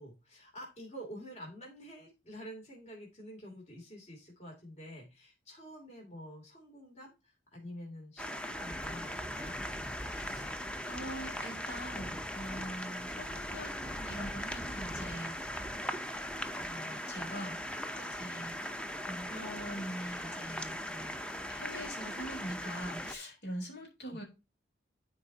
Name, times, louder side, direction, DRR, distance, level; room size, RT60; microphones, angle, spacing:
voice 1, 0.0-9.6 24.1-24.2, equal, 40° left, -1 dB, 2.9 m, -48 dB
sound 1, 8.2-23.1, equal, 5° left, 0.6 m, -39 dB
voice 2, 10.1-10.6 10.9-15.6 16.5-17.6 18.0-18.6 19.1-21.1 21.5-24.2, equal, 75° left, 0 dB, 3.6 m, -43 dB
12.5 x 4.7 x 2.8 m, 0.26 s
head